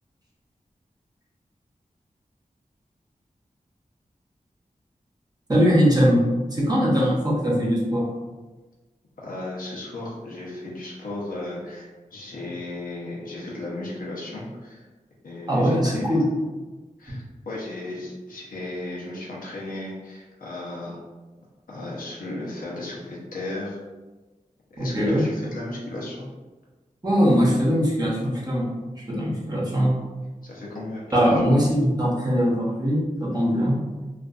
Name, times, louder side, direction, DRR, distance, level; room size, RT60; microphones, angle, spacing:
voice 1, 5.5-8.1 15.5-16.3 24.8-25.2 27.0-28.7 29.1-30.0 31.1-33.8, equal, 30° right, -5 dB, 0.8 m, -21 dB
voice 2, 9.2-14.8 15.2-16.2 17.0-21.0 21.7-23.8 24.8-26.3 30.4-31.2, left 2 dB, 85° left, -5 dB, 0.7 m, -35 dB
2.5 x 2.4 x 2.4 m, 1.2 s
wide cardioid pair, 70°, 14 cm